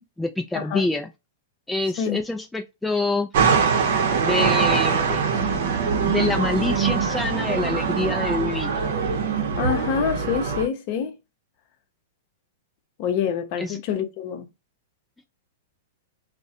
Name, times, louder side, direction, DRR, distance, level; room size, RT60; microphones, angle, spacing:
voice 1, 0.2-1.1 1.7-3.3 4.2-5.2 6.1-8.7 13.6-13.8, left 2 dB, 5° left, 0.3 m, -26 dB
sound 1, 3.3-10.7, right 6 dB, 65° right, 0.6 m, -23 dB
voice 2, 9.6-11.1 13.0-14.5, left 7 dB, 50° left, 0.6 m, -26 dB
2.3 x 2.1 x 2.7 m
hypercardioid pair, 115°, 0 cm